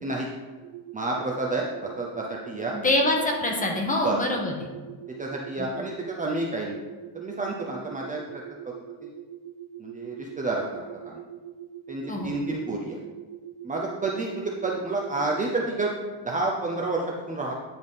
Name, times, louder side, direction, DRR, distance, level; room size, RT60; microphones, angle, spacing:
sound 1, 0.6-15.7, right 10 dB, 80° right, 1.0 m, -43 dB
voice 1, 0.9-2.7 4.0-4.2 5.2-6.8 7.1-8.2 9.0-9.1 9.8-10.8 11.0-11.2 11.9-13.0 13.6-15.9 16.2-17.0 17.3-17.5, right 2 dB, 20° right, -2 dB, 0.6 m, -29 dB
voice 2, 2.7-4.7 5.6-5.7 12.1-12.3, left 1 dB, 20° left, 1 dB, 1.1 m, -25 dB
9.8 x 3.5 x 4.0 m, 1.3 s
cardioid pair, 120°, 44 cm